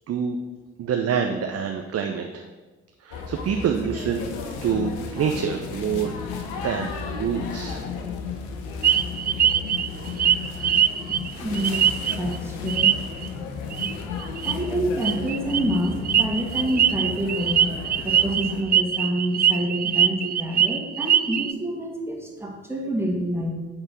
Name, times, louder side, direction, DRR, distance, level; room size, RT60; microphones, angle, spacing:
voice 1, 0.8-2.4 3.0-4.3 4.6-6.1 6.6-7.8, right 7 dB, 45° right, 4 dB, 0.8 m, -26 dB
sound 1, 3.1-18.6, left 5 dB, 75° left, 0.9 m, -33 dB
sound 2, 8.8-12.4 12.7-13.3 13.7-13.9 14.2-14.6 15.0-21.5, right 9 dB, 30° right, 0.4 m, -22 dB
voice 2, 11.4-13.0 13.4-17.7 18.0-23.5, right 1 dB, 5° right, -1 dB, 2.3 m, -28 dB
8.8 x 4.5 x 6.2 m, 1.2 s
figure-of-eight pair, 40°, 34 cm